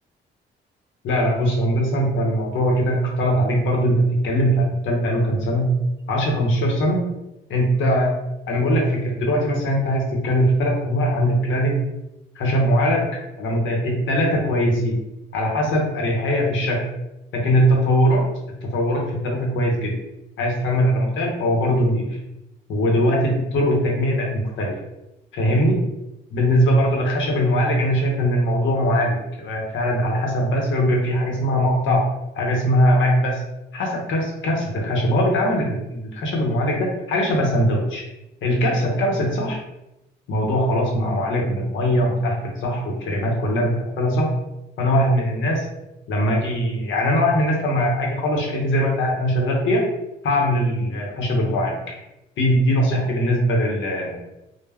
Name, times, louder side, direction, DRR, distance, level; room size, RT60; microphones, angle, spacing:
voice 1, 1.0-5.7 6.1-7.0 7.5-8.1 8.5-11.8 12.3-13.1 13.4-14.9 15.3-16.9 17.3-18.2 18.6-19.9 20.4-22.1 22.7-24.7 25.3-25.8 26.3-32.0 32.4-33.4 33.7-38.0 38.4-39.6 40.3-44.3 44.8-45.7 46.1-49.8 50.2-51.9 52.4-54.2, equal, 75° left, -1 dB, 0.7 m, -21 dB
2.2 x 2.0 x 3.3 m, 0.92 s
cardioid pair, 90°, 20 cm